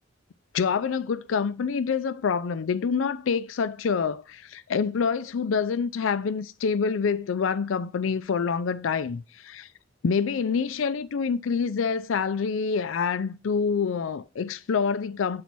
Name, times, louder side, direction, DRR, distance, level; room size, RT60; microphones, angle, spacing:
voice 1, 0.5-9.7 10.0-15.4, left 6 dB, 85° left, 0.4 m, -26 dB
9.5 x 4.1 x 6.0 m
head